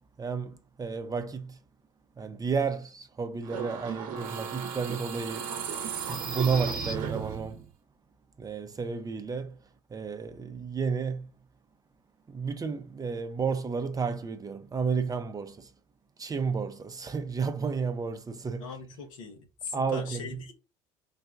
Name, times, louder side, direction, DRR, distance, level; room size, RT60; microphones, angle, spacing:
voice 1, 0.2-1.6 2.2-5.6 6.1-7.6 8.4-9.6 9.9-11.3 12.3-15.7 16.2-18.7 19.7-20.4, right 5 dB, 20° right, 0.6 m, -32 dB
sound 1, 3.4-7.7, right 6 dB, 55° right, 0.8 m, -35 dB
voice 2, 18.6-20.5, left 4 dB, 75° left, 1.0 m, -40 dB
4.0 x 2.2 x 3.6 m
hypercardioid pair, 65°, 17 cm